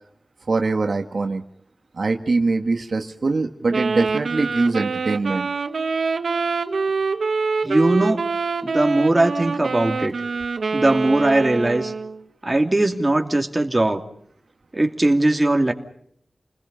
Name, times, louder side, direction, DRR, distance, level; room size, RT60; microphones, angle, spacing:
voice 1, 0.5-1.4 2.0-5.5, right 3 dB, 65° right, 5 dB, 1.5 m, -22 dB
Wind instrument woodwind instrument, 3.7-12.2, right 4 dB, 85° right, 1.5 m, -25 dB
voice 2, 7.6-8.3 8.6-10.1 10.7-11.9 12.4-14.0 14.7-15.7, right 2 dB, 25° right, 3 dB, 2.7 m, -19 dB
30.0 x 21.0 x 5.6 m, 0.68 s
wide cardioid pair, 85°, 0 cm